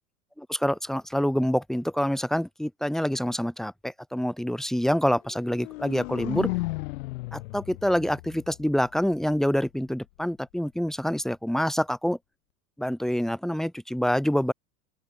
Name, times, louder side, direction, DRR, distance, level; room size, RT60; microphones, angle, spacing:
voice 1, 0.4-6.5 7.3-12.2 12.8-14.5, equal, ahead, 1.2 m, -26 dB
sound 1, 5.3-9.3, left 21 dB, 65° left, 5.0 m, -35 dB
open air
hypercardioid pair, 90°, 45 cm